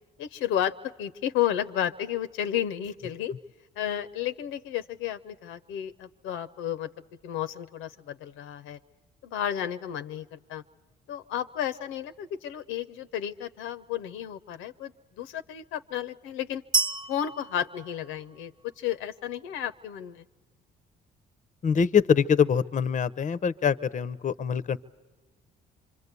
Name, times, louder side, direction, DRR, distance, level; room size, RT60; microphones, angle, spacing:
voice 1, 0.2-3.4 3.8-6.9 7.2-8.8 9.2-10.6 11.1-14.9 15.2-16.6 17.1-20.2, left 10 dB, 75° left, 11 dB, 0.7 m, -32 dB
sound 1, 16.7-18.7, right 4 dB, 20° right, 0.9 m, -30 dB
voice 2, 21.6-24.8, left 7 dB, 35° left, 16 dB, 0.8 m, -24 dB
26.0 x 24.5 x 8.3 m, 1.3 s
hypercardioid pair, 60°, 20 cm